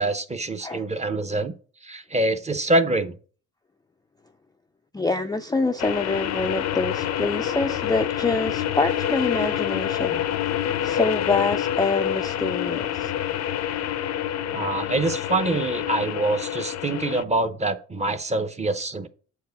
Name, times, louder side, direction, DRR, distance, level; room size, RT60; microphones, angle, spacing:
voice 1, 0.0-1.5 1.8-3.2 14.5-19.1, right 2 dB, 20° right, 0.8 m, -25 dB
voice 2, 4.9-10.2 10.8-13.1, left 3 dB, 15° left, 0.4 m, -26 dB
sound 1, 5.8-17.2, left 10 dB, 60° left, 0.6 m, -27 dB
7.4 x 4.7 x 5.3 m
cardioid pair, 90°, 30 cm